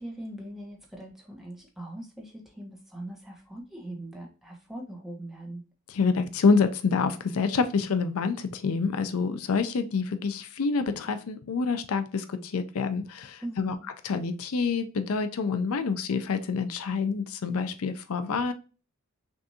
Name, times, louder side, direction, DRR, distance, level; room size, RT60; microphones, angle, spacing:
voice 1, 0.0-5.6 13.4-13.9, right 1 dB, ahead, -1 dB, 1.0 m, -41 dB
voice 2, 5.9-13.7 14.0-18.5, left 4 dB, 80° left, 9 dB, 0.5 m, -27 dB
5.9 x 2.6 x 2.7 m, 0.34 s
head